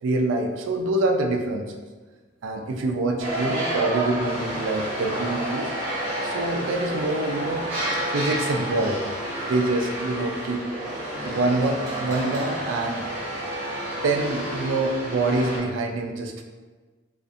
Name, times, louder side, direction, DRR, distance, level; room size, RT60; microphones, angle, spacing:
voice 1, 0.0-1.7 2.4-5.7 6.2-7.7 8.0-9.0 9.5-10.6 11.2-13.1 14.0-16.4, right 2 dB, 90° right, 4 dB, 0.3 m, -25 dB
sound 1, 3.2-15.6, right 1 dB, 55° right, 0.7 m, -30 dB
2.4 x 2.4 x 2.6 m, 1.4 s
head